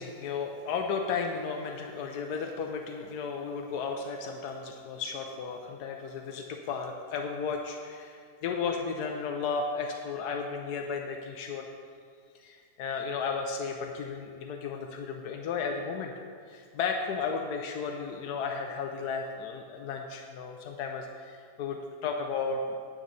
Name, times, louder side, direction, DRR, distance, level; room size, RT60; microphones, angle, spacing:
voice 1, 0.0-11.7 12.3-16.1 16.5-22.6, left 5 dB, 90° left, 3 dB, 1.2 m, -34 dB
9.1 x 9.0 x 4.0 m, 2.1 s
omnidirectional pair, 1.7 m